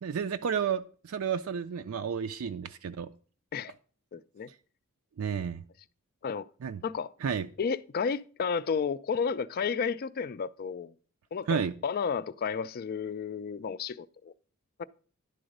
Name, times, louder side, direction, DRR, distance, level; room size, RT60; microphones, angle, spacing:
voice 1, 0.0-3.1 5.2-5.6 6.6-6.8 7.2-7.5 11.5-11.7, right 7 dB, 65° right, 0.4 m, -31 dB
voice 2, 4.1-4.5 6.2-6.5 6.8-7.1 7.6-10.9 11.3-14.3 14.8-14.9, left 6 dB, 45° left, 0.3 m, -32 dB
11.0 x 3.9 x 6.5 m
head